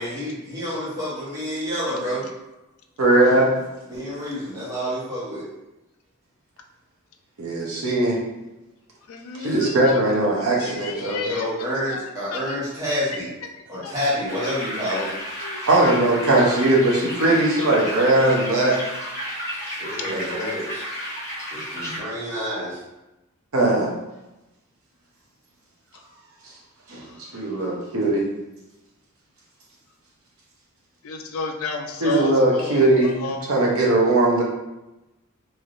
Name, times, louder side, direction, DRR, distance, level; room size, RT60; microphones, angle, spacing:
voice 1, 0.0-2.2 3.9-5.5 9.4-9.6 11.2-13.3 13.7-15.1 19.8-21.0 21.5-22.8, equal, 15° right, -10 dB, 1.2 m, -28 dB
voice 2, 3.0-3.5 7.4-8.2 9.4-11.3 15.7-18.8 20.0-20.5 23.5-23.9 26.9-27.0 27.3-28.3 32.0-34.4, right 2 dB, 85° right, -2 dB, 0.7 m, -19 dB
voice 3, 9.1-9.8 10.6-11.4 12.3-12.6 13.8-13.9 15.4-15.6 31.0-33.5, left 3 dB, 75° left, 4 dB, 0.4 m, -31 dB
sound 1, 14.3-22.0, equal, 15° left, 1.0 m, -32 dB
3.2 x 2.7 x 2.5 m, 0.98 s
head